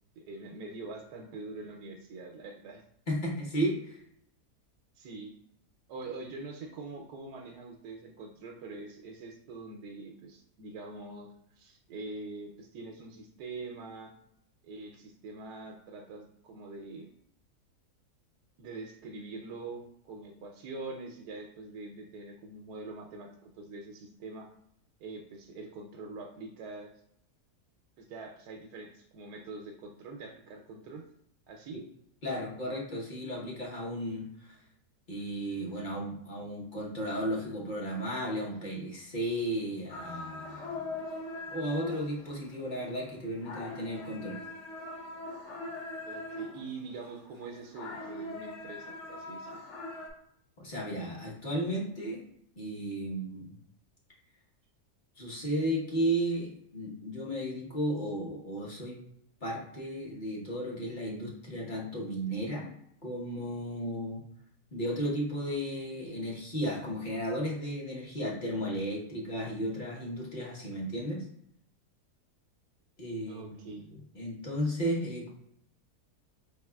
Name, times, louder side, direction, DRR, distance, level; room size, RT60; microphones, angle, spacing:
voice 1, 0.2-2.8 5.0-5.3 5.9-11.3 11.6-14.1 14.6-17.1 18.6-24.5 25.0-26.9 28.0-31.0 31.5-31.8 46.0-49.6 73.3-73.9, right 3 dB, 85° right, 1 dB, 1.2 m, -44 dB
voice 2, 3.1-4.0 31.7-31.8 32.2-34.6 35.1-40.9 41.5-44.4 50.6-52.2 52.6-53.6 55.2-59.0 59.4-62.7 63.0-64.2 64.7-71.2 73.0-73.8 74.1-75.3, equal, 35° left, -4 dB, 1.0 m, -34 dB
sound 1, 39.9-47.0 47.3-50.1, left 2 dB, 55° left, 0.9 m, -41 dB
4.8 x 3.5 x 2.2 m, 0.71 s
omnidirectional pair, 1.7 m